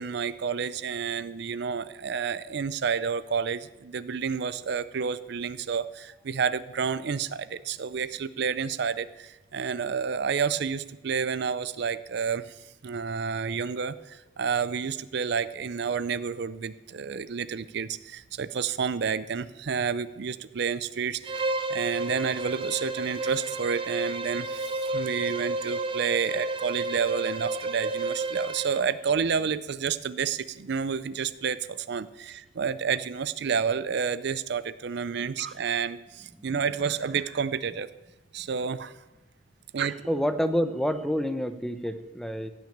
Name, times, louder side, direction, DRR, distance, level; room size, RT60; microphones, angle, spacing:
voice 1, 0.0-12.6 12.8-21.4 21.7-37.9 38.3-38.9 39.7-40.0, right 6 dB, 60° right, 16 dB, 0.5 m, -30 dB
Bowed string instrument, 21.2-28.9, right 2 dB, 25° right, 0.9 m, -31 dB
voice 2, 40.1-42.5, equal, ahead, 9 dB, 0.7 m, -28 dB
16.0 x 6.3 x 8.6 m, 1.1 s
head